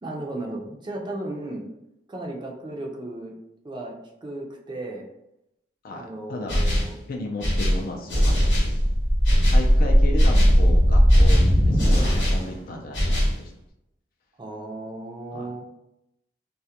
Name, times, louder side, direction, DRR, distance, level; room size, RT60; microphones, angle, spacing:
voice 1, 0.0-1.7 2.1-3.3 3.6-5.1 5.9-7.0 14.4-15.6, right 2 dB, 25° right, 0 dB, 0.4 m, -35 dB
voice 2, 5.8-6.6 7.1-8.9 9.5-13.5 15.3-15.5, left 1 dB, 50° left, 1 dB, 0.3 m, -34 dB
sound 1, 6.5-7.0 7.4-8.8 9.2-9.7 10.2-10.6 11.1-12.5 12.9-13.4, equal, 70° left, 0.8 m, -22 dB
sound 2, 8.2-12.5, equal, 30° left, 0.8 m, -18 dB
2.3 x 2.1 x 2.7 m, 0.85 s
head